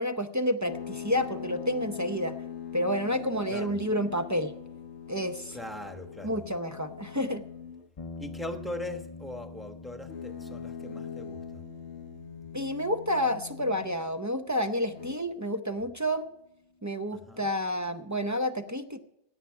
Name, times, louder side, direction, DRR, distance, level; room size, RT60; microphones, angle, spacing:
voice 1, 0.0-2.4 2.7-4.5 5.1-5.6 6.2-7.4 12.5-16.3 16.8-19.0, equal, 20° right, 8 dB, 0.5 m, -29 dB
sound 1, 0.7-8.0 10.0-14.1 14.8-15.2, left 8 dB, 85° left, 1.1 m, -42 dB
voice 2, 5.5-6.4 8.2-11.7 17.1-17.5, left 1 dB, ahead, 6 dB, 1.1 m, -40 dB
sound 2, 8.0-16.3, left 4 dB, 35° left, 0.6 m, -48 dB
17.0 x 9.4 x 4.7 m, 0.86 s
omnidirectional pair, 1.1 m